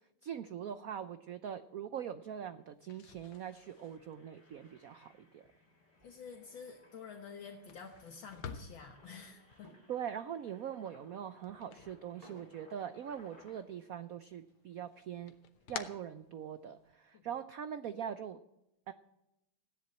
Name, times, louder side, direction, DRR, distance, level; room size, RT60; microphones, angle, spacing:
voice 1, 0.2-5.5 9.9-15.3 15.7-18.4 18.9-19.0, right 9 dB, 75° right, 11 dB, 0.8 m, -42 dB
Engine, 1.9-2.0 2.2-2.4 2.9-13.6, left 1 dB, 25° left, 3.4 m, -65 dB
sound 1, 2.8-12.8 13.1-13.9 14.3-16.9, left 7 dB, 90° left, 1.9 m, -52 dB
sound 2, 4.3-17.2, right 1 dB, 15° right, 3.9 m, -68 dB
voice 2, 6.0-9.7 17.1-17.3, left 6 dB, 70° left, 2 dB, 2.0 m, -50 dB
15.5 x 10.5 x 7.9 m, 0.87 s
omnidirectional pair, 2.3 m